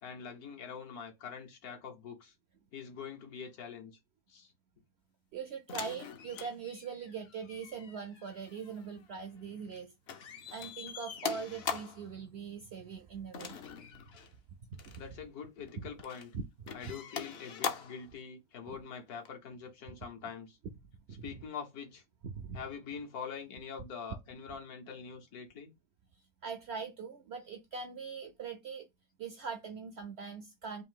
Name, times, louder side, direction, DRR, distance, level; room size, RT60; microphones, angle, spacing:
voice 1, 0.0-2.3 2.7-4.0 4.3-4.5 15.0-16.3 16.7-20.6 21.2-22.0 22.5-25.7, left 6 dB, 80° left, 1.6 m, -44 dB
voice 2, 5.3-9.9 10.5-14.0 14.8-14.9 15.8-15.9 16.6-16.9 21.1-21.3 22.2-22.6 26.4-28.9 29.2-30.8, right 6 dB, 65° right, 0.6 m, -42 dB
sound 1, 5.7-9.8 10.1-12.1 13.3-14.3 14.7-15.0 15.7-16.3 16.7-18.1 19.2-19.3, left 6 dB, 55° left, 0.7 m, -42 dB
3.8 x 2.7 x 3.7 m
omnidirectional pair, 1.6 m